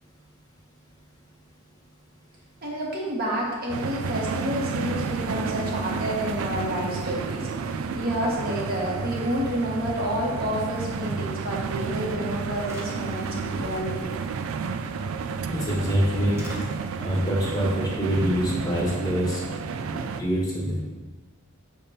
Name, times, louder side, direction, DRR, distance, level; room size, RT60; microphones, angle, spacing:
voice 1, 2.6-14.1, equal, 45° right, -4 dB, 1.4 m, -29 dB
sound 1, 3.7-20.2, right 5 dB, 80° right, 0.4 m, -31 dB
sound 2, 12.0-12.1 12.6-13.8 15.2-15.3 15.6-16.6, equal, 15° right, 1.0 m, -44 dB
voice 2, 15.5-16.4 17.0-19.4 20.2-20.8, equal, 20° left, -4 dB, 1.1 m, -25 dB
6.6 x 3.5 x 4.2 m, 1.3 s
head